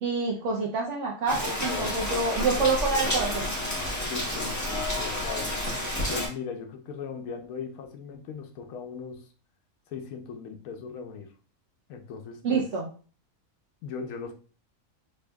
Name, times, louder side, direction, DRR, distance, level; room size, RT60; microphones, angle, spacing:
voice 1, 0.0-3.5 12.4-12.9, right 4 dB, 65° right, -2 dB, 0.9 m, -27 dB
Rain, 1.3-6.3, left 1 dB, 15° left, 0.8 m, -30 dB
voice 2, 1.7-2.0 2.5-3.4 4.1-5.6 6.1-9.3 9.9-11.3 11.9-12.7 13.8-14.3, left 6 dB, 80° left, 4 dB, 1.1 m, -39 dB
4.3 x 2.7 x 2.2 m, 0.38 s
omnidirectional pair, 1.5 m